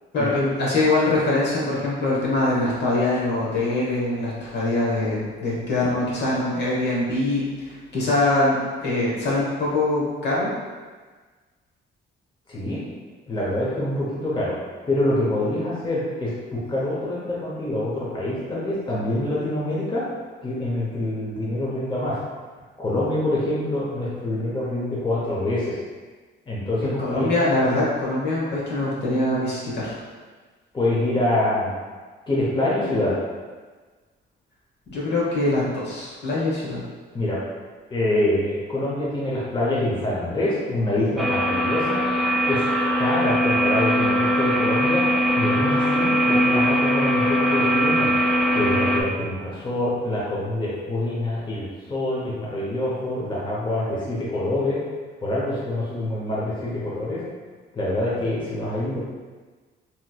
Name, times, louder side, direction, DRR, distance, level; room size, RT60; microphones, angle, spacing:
voice 1, 0.1-10.5 26.8-29.9 34.9-36.8, left 2 dB, 60° left, -6 dB, 1.1 m, -23 dB
voice 2, 12.5-12.8 13.3-14.5 14.9-20.0 20.4-22.2 22.8-25.8 26.5-27.4 30.7-31.7 32.3-33.1 37.1-37.4 37.9-42.0 42.5-42.6 43.0-45.0 45.4-48.1 48.5-54.8 55.2-57.2 57.7-59.0, left 1 dB, 25° left, -6 dB, 0.8 m, -25 dB
sound 1, 41.2-49.0, equal, ahead, 0.3 m, -21 dB
3.0 x 2.9 x 2.3 m, 1.4 s
cardioid pair, 90°, 20 cm